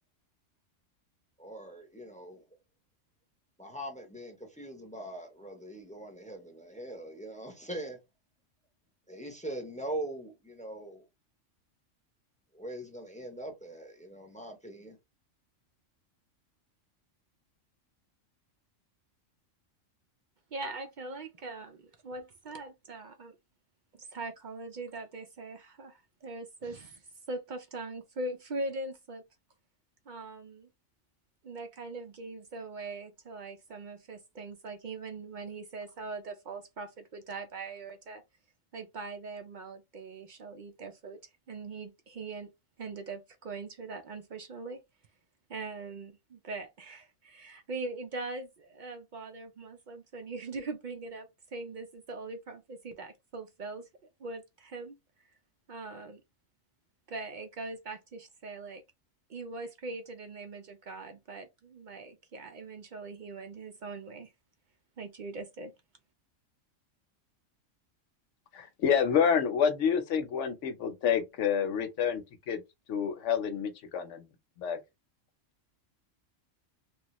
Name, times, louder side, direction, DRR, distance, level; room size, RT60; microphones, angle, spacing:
voice 1, 1.4-2.4 3.6-8.0 9.1-11.0 12.5-15.0, right 1 dB, 10° left, 0.6 m, -41 dB
voice 2, 20.5-23.3 23.9-29.2 30.1-30.7 31.4-38.2 38.7-42.5 42.8-44.8 45.5-53.9 54.2-55.0 55.7-56.2 57.1-58.8 59.3-64.3 65.0-65.7, right 3 dB, 70° right, 0.4 m, -41 dB
voice 3, 68.5-72.6 72.9-74.3 74.6-74.8, left 7 dB, 70° left, 0.9 m, -28 dB
3.1 x 2.3 x 2.9 m
omnidirectional pair, 1.3 m